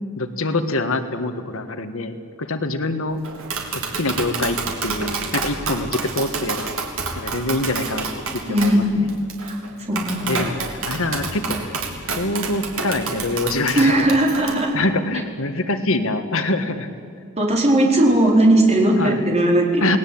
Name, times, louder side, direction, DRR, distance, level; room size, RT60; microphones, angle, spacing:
voice 1, 0.2-3.2 3.7-4.6 4.8-6.7 7.1-9.1 10.3-16.9 19.0-19.2 19.8-20.0, left 2 dB, 65° left, 8 dB, 1.7 m, -25 dB
Tap, 3.2-14.5, right 4 dB, 65° right, 3.8 m, -29 dB
voice 2, 8.5-8.8 9.4-9.6 9.9-10.2 13.7-14.7 17.4-20.0, right 1 dB, 30° right, 0 dB, 4.7 m, -17 dB
28.5 x 19.5 x 8.8 m, 2.4 s
head